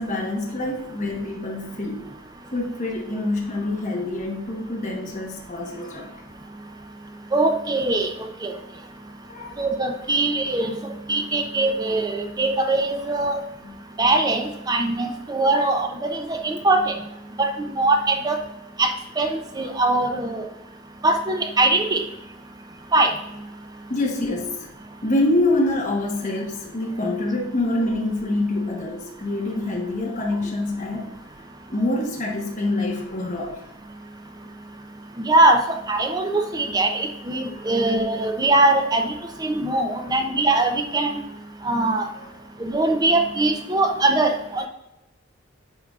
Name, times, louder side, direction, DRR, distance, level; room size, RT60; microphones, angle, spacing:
voice 1, 0.0-2.1 2.5-6.2 9.3-9.7 13.6-13.8 15.5-15.7 23.9-24.7 25.0-31.2 31.7-33.6 37.5-37.7 39.9-40.1 42.1-42.3, left 2 dB, 35° left, -2 dB, 1.1 m, -26 dB
voice 2, 7.3-8.1 8.4-8.5 9.6-10.7 11.1-13.4 14.0-16.9 17.4-17.5 17.8-18.4 18.8-20.4 21.0-22.0 22.9-23.1 35.2-39.1 39.4-41.2 41.6-42.1 42.6-44.7, right 2 dB, 20° right, 5 dB, 0.5 m, -21 dB
9.3 x 5.2 x 2.4 m, 0.90 s
head